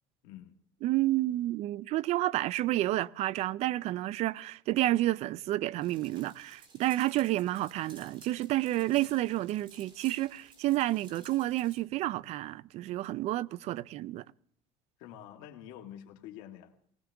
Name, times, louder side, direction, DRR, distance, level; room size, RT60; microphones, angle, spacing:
voice 1, 0.2-0.6 15.0-16.7, left 11 dB, 75° left, 1.8 m, -47 dB
voice 2, 0.8-14.2, right 16 dB, 55° right, 0.5 m, -30 dB
sound 1, 5.8-11.8, right 3 dB, 40° right, 4.6 m, -56 dB
19.5 x 19.0 x 3.5 m
supercardioid pair, 115°, 13 cm